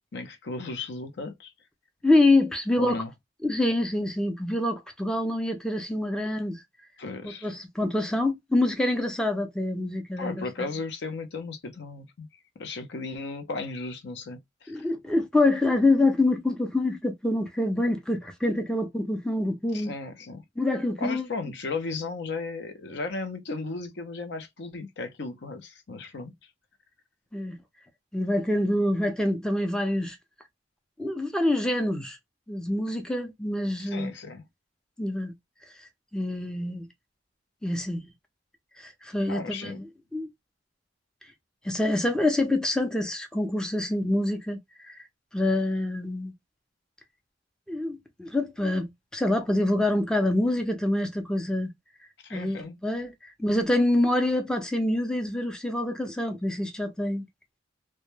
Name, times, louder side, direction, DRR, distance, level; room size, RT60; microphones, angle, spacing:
voice 1, 0.1-1.5 2.8-3.1 7.0-7.5 10.2-12.3 12.6-14.7 19.7-20.4 21.0-26.3 33.9-34.4 39.3-39.8 52.2-52.8, left 3 dB, 70° left, 0.6 m, -35 dB
voice 2, 2.0-3.0 3.4-6.6 7.2-10.7 14.7-20.0 20.6-21.3 27.3-27.6 28.1-30.2 31.0-32.2 32.5-34.1 35.0-35.3 36.1-36.9 37.6-38.1 38.8-40.3 41.6-45.0 45.3-46.3 47.7-51.7 52.3-57.3, left 1 dB, 5° left, 0.5 m, -26 dB
2.1 x 2.1 x 3.0 m
head